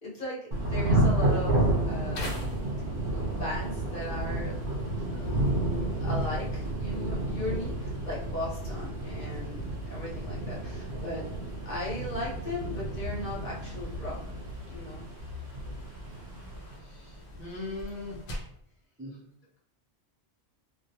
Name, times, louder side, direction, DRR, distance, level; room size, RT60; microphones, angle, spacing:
voice 1, 0.0-2.6 3.1-4.6 5.2-5.7 6.0-11.2 11.6-14.2 14.7-15.0, left 1 dB, 45° left, -7 dB, 1.1 m, -37 dB
Thunder / Rain, 0.5-16.8, right 1 dB, 60° right, 1.0 m, -31 dB
sound 1, 2.1-18.6, equal, 75° left, 0.9 m, -46 dB
voice 2, 16.9-18.2 19.0-19.1, left 2 dB, 15° right, -7 dB, 0.5 m, -39 dB
2.4 x 2.2 x 2.8 m, 0.69 s
omnidirectional pair, 1.1 m